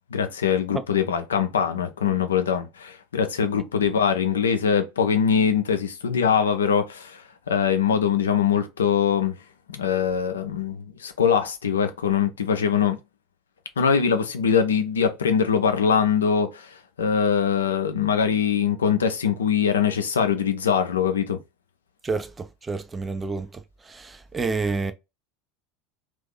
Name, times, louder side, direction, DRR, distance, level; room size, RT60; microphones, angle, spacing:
voice 1, 0.1-9.4 9.7-13.0 13.8-21.4, left 7 dB, 70° left, 0.5 m, -22 dB
voice 2, 22.0-23.5 23.9-24.9, right 4 dB, 20° right, 0.5 m, -29 dB
2.7 x 2.6 x 3.7 m
figure-of-eight pair, 75°, 0 cm